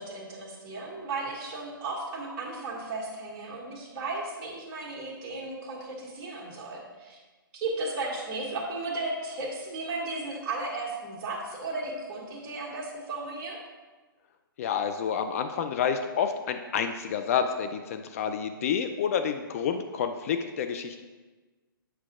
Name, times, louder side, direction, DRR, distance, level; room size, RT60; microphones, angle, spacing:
voice 1, 0.0-7.2 7.5-13.6, right 3 dB, 30° right, -3 dB, 1.6 m, -35 dB
voice 2, 14.6-21.0, left 7 dB, 40° left, 7 dB, 0.4 m, -29 dB
7.7 x 5.7 x 2.4 m, 1.3 s
hypercardioid pair, 135°, 12 cm